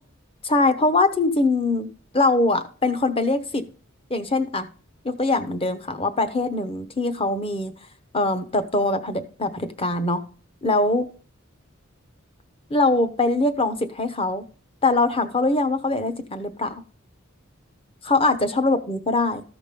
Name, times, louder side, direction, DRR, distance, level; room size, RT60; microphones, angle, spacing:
voice 1, 0.4-1.9 2.1-3.7 4.1-4.7 5.0-7.7 8.1-10.2 10.6-11.1 12.7-14.4 14.8-16.8 18.0-19.4, left 2 dB, 25° left, 9 dB, 0.9 m, -22 dB
14.0 x 5.1 x 5.2 m, 0.41 s
head